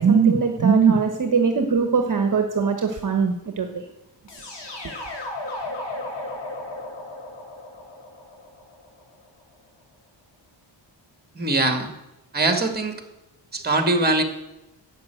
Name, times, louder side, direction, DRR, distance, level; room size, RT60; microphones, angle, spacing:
voice 1, 0.0-3.8, right 5 dB, 45° right, 5 dB, 1.1 m, -20 dB
sound 1, 4.3-9.2, left 2 dB, 65° left, 3.5 m, -35 dB
voice 2, 11.4-11.9 12.3-13.0 13.5-14.2, right 2 dB, 20° right, 7 dB, 1.8 m, -22 dB
11.5 x 7.1 x 9.0 m, 0.97 s
wide cardioid pair, 120°, 45 cm